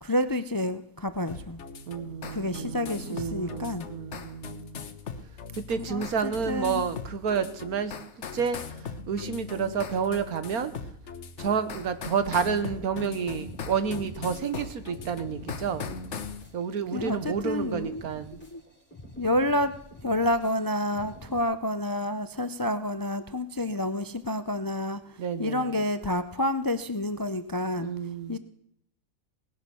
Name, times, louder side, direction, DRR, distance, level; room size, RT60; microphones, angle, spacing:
voice 1, 0.0-1.6 2.3-3.9 5.9-6.8 16.9-18.0 18.4-18.6 19.2-19.7 20.0-27.9 28.3-28.4, left 1 dB, 35° left, 12 dB, 0.3 m, -29 dB
sound 1, 1.3-16.4, left 5 dB, 55° left, 1.3 m, -40 dB
voice 2, 1.9-4.8 5.6-7.9 8.3-10.7 11.4-16.0 16.5-18.4 25.2-25.8 27.8-28.4, right 6 dB, 90° right, 12 dB, 1.7 m, -30 dB
sound 2, 13.4-21.4, left 1 dB, 5° left, 3.4 m, -48 dB
18.5 x 10.5 x 7.0 m, 0.70 s
omnidirectional pair, 1.5 m